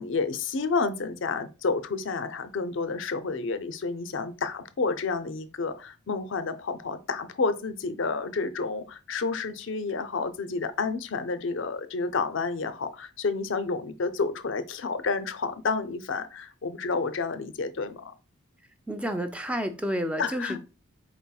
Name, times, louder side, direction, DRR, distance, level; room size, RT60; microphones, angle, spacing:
voice 1, 0.0-18.1 20.2-20.6, left 4 dB, 60° left, 0.5 m, -30 dB
voice 2, 18.9-20.6, equal, 5° right, 0.4 m, -30 dB
4.3 x 4.1 x 2.3 m
head